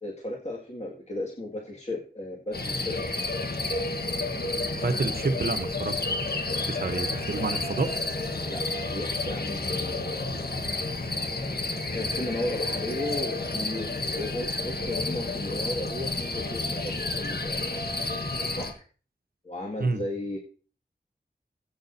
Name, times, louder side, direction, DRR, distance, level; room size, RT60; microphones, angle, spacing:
voice 1, 0.0-2.9 8.4-8.6 8.9-10.4 11.9-17.9 18.4-18.8 19.4-20.4, left 1 dB, 40° left, -2 dB, 2.0 m, -35 dB
sound 1, 2.5-18.7, left 2 dB, 65° left, 1.3 m, -30 dB
voice 2, 4.7-5.9 6.7-7.9 19.8-20.0, right 3 dB, 60° right, 8 dB, 1.0 m, -28 dB
16.0 x 9.0 x 2.7 m, 0.40 s
wide cardioid pair, 45°, 18 cm